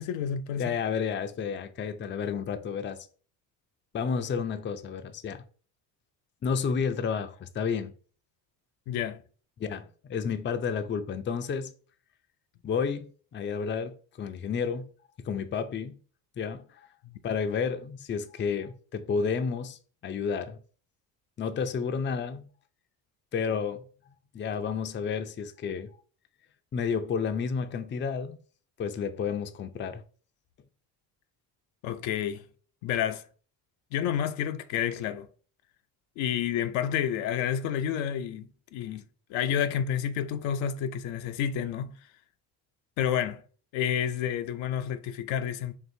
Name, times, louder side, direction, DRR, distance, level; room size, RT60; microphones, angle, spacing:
voice 1, 0.0-0.7 8.9-9.2 17.0-17.1 31.8-32.5 32.8-33.2 33.9-35.3 36.2-39.0 39.3-41.9 43.0-43.4 43.7-45.8, left 9 dB, 70° left, 0.6 m, -30 dB
voice 2, 0.6-3.1 3.9-5.4 6.4-7.9 9.6-11.7 12.6-14.9 15.2-16.0 16.4-16.8 17.2-20.6 21.4-22.4 23.3-23.8 24.3-25.9 26.7-28.4 28.8-30.0, left 6 dB, 25° left, 0.5 m, -31 dB
4.6 x 3.0 x 2.6 m
supercardioid pair, 70°, 48 cm